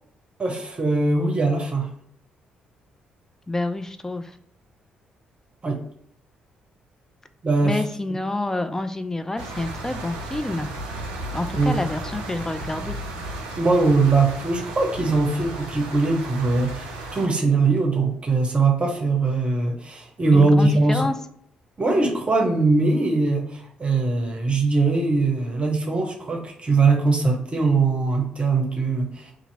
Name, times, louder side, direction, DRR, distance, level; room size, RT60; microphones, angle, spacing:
voice 1, 0.4-1.9 5.6-5.8 7.4-7.8 11.6-11.7 13.6-21.1 21.8-29.3, right 3 dB, 30° right, 1 dB, 0.8 m, -21 dB
voice 2, 3.5-4.3 7.6-10.7 11.3-13.0 20.3-21.1, left 2 dB, 15° left, 8 dB, 0.3 m, -28 dB
sound 1, 9.4-17.3, right 2 dB, 70° right, 0.4 m, -34 dB
2.8 x 2.6 x 4.0 m, 0.67 s
figure-of-eight pair, 40°, 4 cm